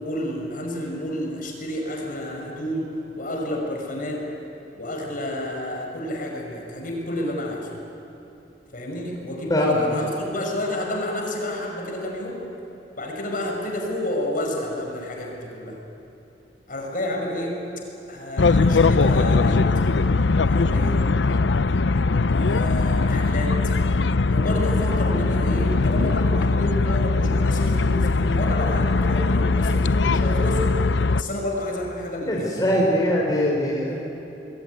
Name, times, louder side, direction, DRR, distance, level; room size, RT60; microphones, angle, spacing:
voice 1, 0.0-4.3 4.8-7.7 8.7-12.5 13.0-15.8 16.7-17.6 18.1-19.6 20.5-21.0 22.3-23.5 24.3-30.9 31.1-32.9, left 1 dB, 50° left, 1 dB, 5.7 m, -30 dB
voice 2, 9.5-9.8 32.3-34.0, equal, 20° left, -2 dB, 3.8 m, -22 dB
sound 1, 18.4-31.2, left 3 dB, 90° left, 0.6 m, -20 dB
26.5 x 21.0 x 9.6 m, 3.0 s
head